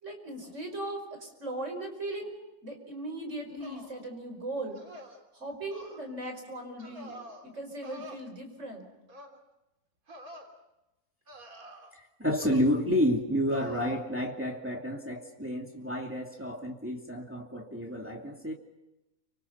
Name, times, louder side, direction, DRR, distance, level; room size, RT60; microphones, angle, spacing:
voice 1, 0.0-2.3 2.6-4.8 5.3-8.9, right 1 dB, 55° right, 4 dB, 5.5 m, -38 dB
sound 1, 3.6-4.0 4.8-5.2 5.7-6.0 6.8-7.4 7.8-8.2 9.1-9.4 10.1-10.5 11.3-12.0 12.4-12.8 13.5-14.0, equal, 85° right, 3.7 m, -47 dB
voice 2, 11.9-18.5, equal, 10° right, 0 dB, 2.5 m, -30 dB
29.5 x 26.0 x 5.7 m, 0.96 s
omnidirectional pair, 1.5 m